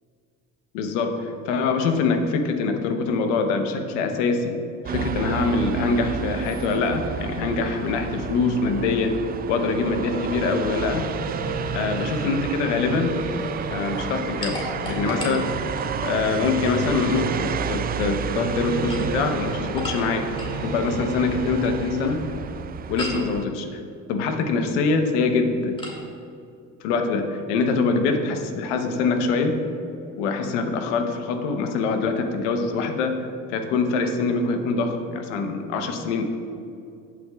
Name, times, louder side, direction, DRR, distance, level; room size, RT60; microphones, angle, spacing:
voice 1, 0.7-4.6 4.9-9.2 9.5-11.1 11.7-13.2 13.7-15.5 16.0-20.3 20.6-22.2 22.9-23.8 24.1-25.8 26.8-29.6 30.1-33.2 33.5-36.2, left 4 dB, 85° left, 6 dB, 1.0 m, -24 dB
sound 1, 4.9-23.5, right 7 dB, 30° right, 0.3 m, -31 dB
sound 2, 10.7-22.1, right 2 dB, 60° right, 1.7 m, -34 dB
sound 3, 14.4-16.2 18.7-20.6 23.0-23.3 25.8-26.0, left 1 dB, 15° left, 2.3 m, -35 dB
18.0 x 6.1 x 2.4 m, 2.5 s
hypercardioid pair, 65°, 35 cm